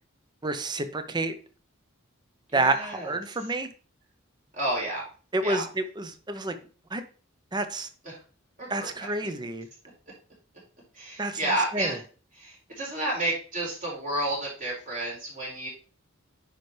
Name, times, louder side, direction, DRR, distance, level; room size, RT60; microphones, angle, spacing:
voice 1, 0.4-1.3 2.5-3.7 5.3-6.5 6.9-7.0 7.5-7.9 8.7-9.7 11.2-11.4 11.7-12.0, right 2 dB, 20° right, 10 dB, 0.6 m, -29 dB
voice 2, 2.5-3.2 4.5-5.0 5.4-5.6 8.0-8.2 8.6-8.9 10.9-12.0 12.4-15.7, right 1 dB, 40° right, -4 dB, 4.3 m, -31 dB
8.9 x 5.3 x 3.2 m, 0.38 s
head